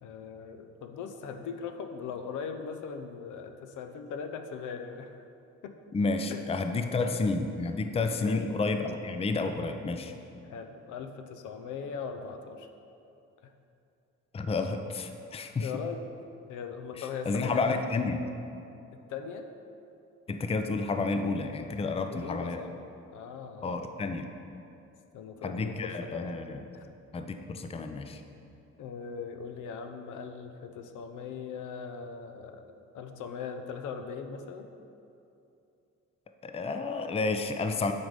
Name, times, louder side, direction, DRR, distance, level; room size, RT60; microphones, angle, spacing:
voice 1, 0.0-5.2 5.6-5.7 6.3-6.4 6.9-7.2 8.2-8.6 10.4-12.7 13.4-13.5 15.6-16.0 16.5-17.8 19.1-19.5 22.0-22.7 23.1-23.8 25.1-26.4 26.7-26.8 27.8-27.9 28.8-32.7 32.9-34.7, left 6 dB, 80° left, 6 dB, 0.7 m, -40 dB
voice 2, 5.9-10.1 14.3-15.7 17.0-18.2 20.3-22.6 23.6-24.3 25.4-26.6 27.1-28.2 36.4-37.9, left 3 dB, 20° left, 7 dB, 0.5 m, -30 dB
9.4 x 4.0 x 5.0 m, 2.7 s
cardioid pair, 90°, 30 cm